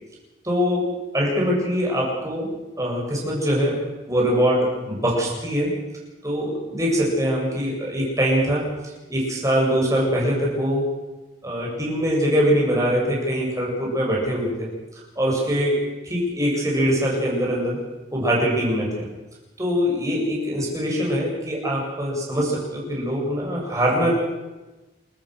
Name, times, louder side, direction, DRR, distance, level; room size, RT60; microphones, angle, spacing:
voice 1, 0.4-5.7 6.2-8.7 9.1-10.9 11.4-14.7 15.2-15.8 16.1-17.8 18.1-18.9 19.6-24.1, equal, 20° right, -3 dB, 7.4 m, -23 dB
29.5 x 14.0 x 6.7 m, 1.1 s
head